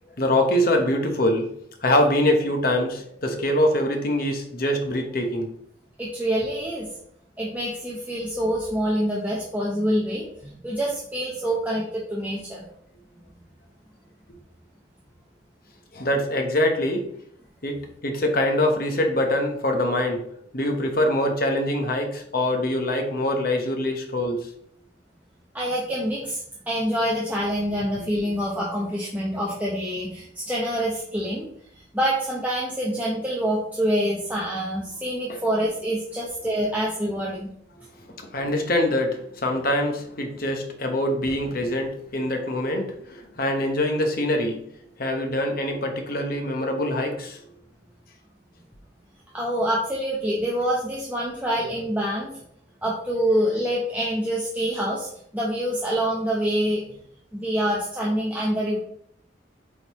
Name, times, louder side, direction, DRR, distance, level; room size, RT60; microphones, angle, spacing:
voice 1, 0.2-1.5 1.8-5.5 15.9-17.1 17.6-20.2 20.5-24.5 35.3-35.4 38.2-44.7 45.0-47.4, left 1 dB, 50° left, 3 dB, 1.0 m, -24 dB
voice 2, 6.0-6.9 7.4-12.6 25.5-26.4 26.7-31.5 31.9-37.5 49.3-52.4 52.8-55.1 55.3-56.8 57.3-58.8, equal, 10° right, -5 dB, 0.8 m, -26 dB
8.0 x 3.8 x 3.1 m, 0.69 s
head